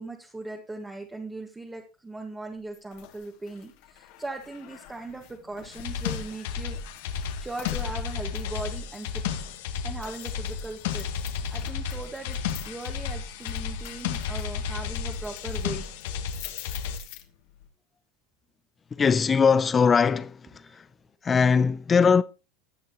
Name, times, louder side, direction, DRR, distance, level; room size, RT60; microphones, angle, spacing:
voice 1, 0.0-6.8 7.1-9.1 9.8-11.1 11.5-12.4 12.7-15.9 20.6-20.8, right 2 dB, 10° right, 1.9 m, -39 dB
sound 1, 2.7-17.7, left 12 dB, 70° left, 2.6 m, -46 dB
sound 2, 5.7-17.0, left 7 dB, 85° left, 1.8 m, -33 dB
voice 2, 18.9-20.9 21.2-22.2, left 6 dB, 20° left, 0.6 m, -21 dB
18.0 x 6.6 x 3.1 m
supercardioid pair, 125°, 0 cm